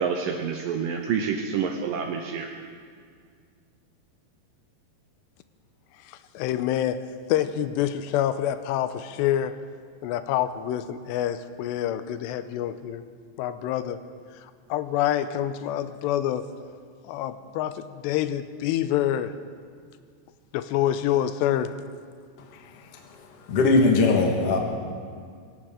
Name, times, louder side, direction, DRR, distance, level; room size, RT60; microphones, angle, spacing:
voice 1, 0.0-2.5, right 6 dB, 85° right, 4 dB, 1.9 m, -28 dB
voice 2, 6.1-7.0 7.3-9.6 10.0-13.0 13.4-14.0 14.7-16.5 17.0-19.3 20.5-21.7, left 11 dB, 85° left, 11 dB, 2.8 m, -26 dB
voice 3, 23.5-24.6, left 3 dB, 50° left, 1 dB, 1.9 m, -20 dB
24.0 x 16.0 x 3.7 m, 2.1 s
omnidirectional pair, 5.0 m